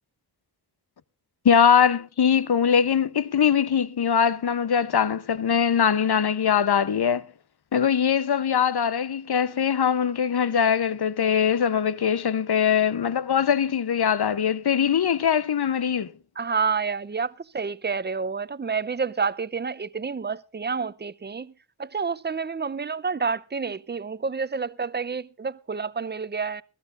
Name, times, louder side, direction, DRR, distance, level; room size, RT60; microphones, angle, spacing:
voice 1, 1.4-7.2 7.7-16.1, left 7 dB, 65° left, 0.9 m, -22 dB
voice 2, 16.4-21.5 21.8-26.6, right 5 dB, 25° right, 0.6 m, -29 dB
21.0 x 14.5 x 2.5 m
wide cardioid pair, 95°, 41 cm